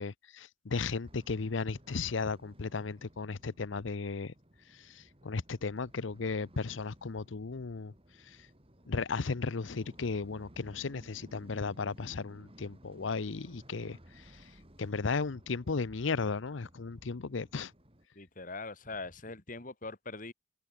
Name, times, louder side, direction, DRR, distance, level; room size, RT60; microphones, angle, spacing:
voice 1, 0.0-4.3 4.7-7.9 8.2-8.4 8.9-14.5 14.8-17.7, left 4 dB, 80° left, 0.7 m, -35 dB
sound 1, 1.0-18.1, equal, 30° right, 6.3 m, -58 dB
voice 2, 18.2-20.3, left 3 dB, 45° left, 2.5 m, -42 dB
open air
head